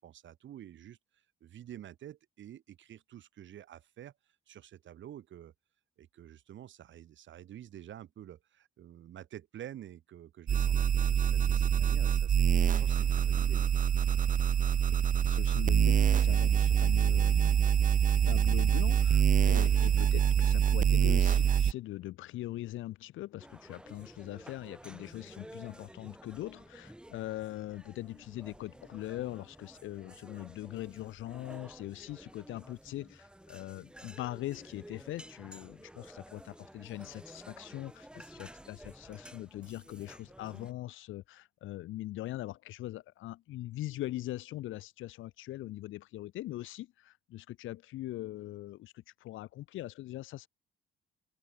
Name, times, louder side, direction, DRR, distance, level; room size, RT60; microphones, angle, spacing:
voice 1, 0.0-4.1 4.5-5.5 6.0-13.7, right 11 dB, 70° right, 5.6 m, -49 dB
sound 1, 10.5-21.7, right 9 dB, 40° right, 0.5 m, -25 dB
voice 2, 14.7-17.6 18.3-50.5, left 15 dB, 85° left, 1.7 m, -41 dB
sound 2, 23.4-40.7, right 1 dB, 5° right, 3.8 m, -52 dB
cardioid pair, 90°, 20 cm